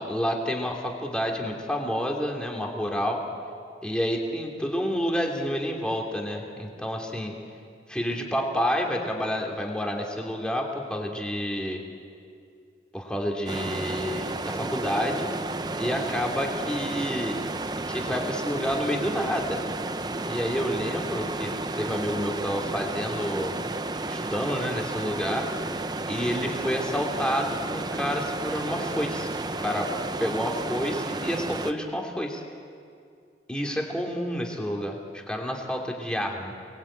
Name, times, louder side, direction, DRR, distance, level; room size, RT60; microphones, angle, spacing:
voice 1, 0.0-3.2 3.8-7.3 7.9-11.8 12.9-15.3 15.8-17.4 17.9-19.6 20.3-23.5 24.1-25.5 26.1-29.3 29.6-29.9 30.2-32.4 33.5-36.7, equal, 5° left, 0 dB, 3.0 m, -29 dB
sound 1, 13.5-31.7, right 2 dB, 25° right, 0.7 m, -32 dB
29.0 x 20.5 x 8.8 m, 2.3 s
head